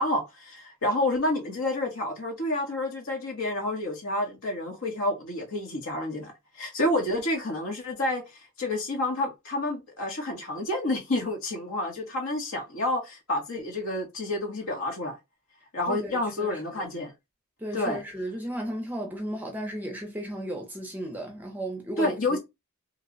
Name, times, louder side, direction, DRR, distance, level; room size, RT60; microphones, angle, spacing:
voice 1, 0.0-15.2 15.7-17.1 17.7-18.0 22.0-22.4, left 1 dB, 65° left, 1.1 m, -29 dB
voice 2, 15.9-16.8 17.6-22.2, right 1 dB, 10° right, 0.6 m, -34 dB
3.0 x 2.1 x 3.7 m
head